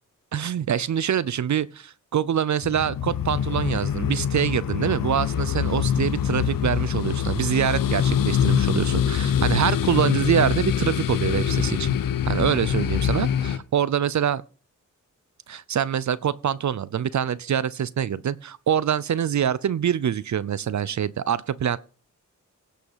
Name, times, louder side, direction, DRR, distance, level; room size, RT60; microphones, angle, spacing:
voice 1, 0.3-12.0 12.2-14.4 15.5-21.8, right 9 dB, 60° right, 0.6 m, -25 dB
sound 1, 2.6-13.6, left 9 dB, 80° left, 0.9 m, -24 dB
16.5 x 5.6 x 5.6 m
cardioid pair, 75°, 33 cm